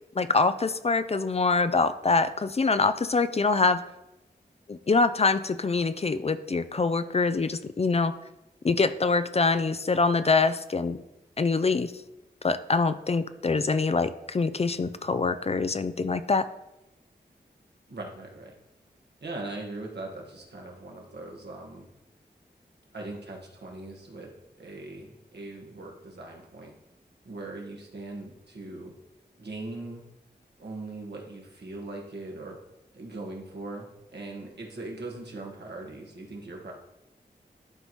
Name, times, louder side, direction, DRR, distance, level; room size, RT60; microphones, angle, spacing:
voice 1, 0.2-3.8 4.7-8.1 8.6-11.0 11.4-11.9 12.4-16.5, left 4 dB, 35° left, 12 dB, 0.4 m, -24 dB
voice 2, 17.9-18.5 19.2-21.9 22.9-24.3 24.6-26.7 27.2-28.9 29.4-30.0 30.6-32.6 32.9-36.7, right 2 dB, 75° right, -1 dB, 1.4 m, -40 dB
11.5 x 4.0 x 3.1 m, 0.93 s
cardioid pair, 40°, 18 cm